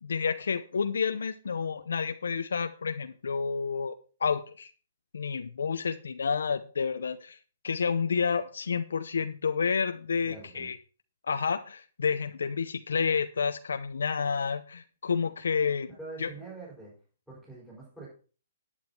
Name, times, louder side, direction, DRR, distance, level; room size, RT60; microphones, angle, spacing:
voice 1, 0.0-3.9 4.2-4.7 5.1-7.4 7.6-10.8 11.3-15.9 16.2-16.3, left 6 dB, 85° left, 9 dB, 0.8 m, -30 dB
voice 2, 10.2-10.7 16.0-16.9 17.3-18.1, right 3 dB, 5° right, -8 dB, 5.8 m, -44 dB
9.8 x 9.0 x 4.3 m, 0.37 s
hypercardioid pair, 145°, 0 cm